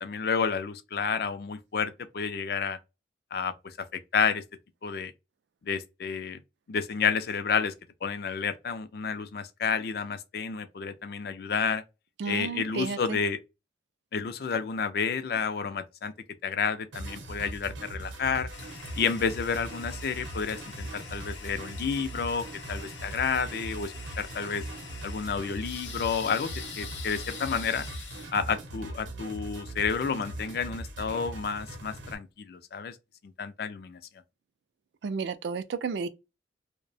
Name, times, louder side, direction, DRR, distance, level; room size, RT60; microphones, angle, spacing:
voice 1, 0.0-2.8 3.3-4.4 4.8-5.1 5.6-6.4 6.7-7.7 8.0-11.8 12.3-13.4 14.1-16.1 16.4-18.5 19.0-24.6 25.0-26.5 26.8-27.9 28.3-32.9 33.4-34.0, left 6 dB, 55° left, 0.3 m, -30 dB
voice 2, 12.2-13.2 35.0-36.1, right 5 dB, 70° right, 0.3 m, -32 dB
sound 1, 16.9-32.2, right 1 dB, 85° right, 0.7 m, -40 dB
Toilet flush, 18.5-31.1, left 6 dB, 85° left, 0.7 m, -45 dB
2.7 x 2.1 x 2.5 m
head